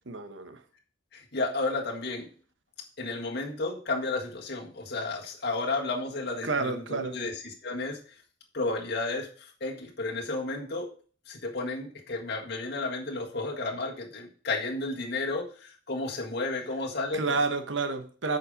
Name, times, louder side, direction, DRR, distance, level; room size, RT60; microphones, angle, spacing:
voice 1, 0.1-0.6 6.4-7.2 17.1-18.4, right 4 dB, 75° right, 1.1 m, -30 dB
voice 2, 1.1-2.3 3.0-8.0 8.5-10.9 11.3-17.4, left 3 dB, 60° left, 1.7 m, -32 dB
8.8 x 5.7 x 5.0 m
head